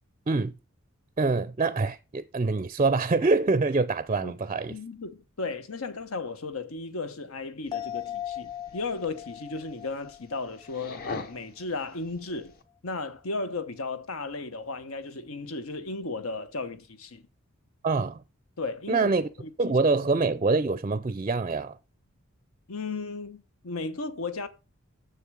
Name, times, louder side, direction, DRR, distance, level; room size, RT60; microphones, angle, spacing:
voice 1, 1.2-4.7 17.8-18.2 18.9-19.3 19.6-21.8, right 3 dB, 30° right, 0.4 m, -25 dB
voice 2, 4.7-12.5 12.8-17.2 18.6-19.1 19.4-19.8 22.7-24.5, left 3 dB, 80° left, 1.1 m, -35 dB
sound 1, 7.7-12.6, left 4 dB, 45° left, 1.0 m, -45 dB
sound 2, 7.7-11.4 11.8-11.9, left 11 dB, 20° left, 0.5 m, -39 dB
7.1 x 6.9 x 6.2 m
head